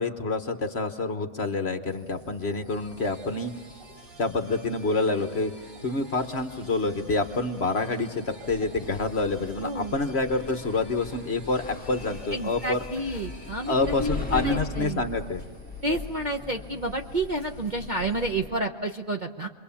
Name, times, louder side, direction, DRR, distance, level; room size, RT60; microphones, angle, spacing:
voice 1, 0.0-3.5 4.2-5.5 5.8-12.8 13.7-15.4, left 3 dB, 45° left, 7 dB, 1.2 m, -27 dB
sound 1, 1.9-18.3, left 1 dB, 55° right, 7.9 m, -52 dB
sound 2, 2.7-14.5, right 2 dB, 85° right, 3.4 m, -51 dB
sound 3, 8.4-18.6, left 3 dB, 5° left, 1.7 m, -39 dB
voice 2, 9.6-9.9 12.3-15.0 15.8-19.5, right 1 dB, 35° right, 1 dB, 0.9 m, -30 dB
29.0 x 23.0 x 7.1 m, 1.5 s
omnidirectional pair, 1.8 m